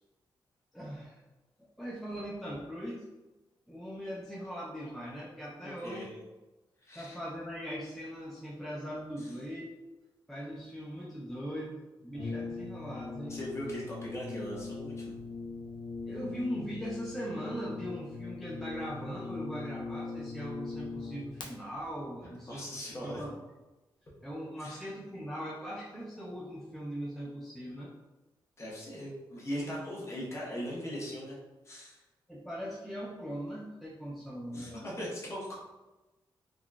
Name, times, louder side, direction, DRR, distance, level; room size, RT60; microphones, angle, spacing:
voice 1, 0.7-1.2 1.8-3.0 3.7-6.1 7.0-9.8 10.3-13.4 16.1-23.3 24.2-27.9 32.3-34.9, equal, ahead, -5 dB, 0.4 m, -40 dB
voice 2, 5.6-6.1 6.8-7.2 9.2-9.3 13.3-15.1 22.5-23.2 24.6-24.9 28.6-31.4 31.6-32.0 34.5-35.7, equal, 30° left, -5 dB, 1.0 m, -39 dB
Brass instrument, 12.1-21.5, left 4 dB, 60° left, 0.5 m, -40 dB
3.7 x 2.3 x 2.3 m, 1.1 s
cardioid pair, 100°, 9 cm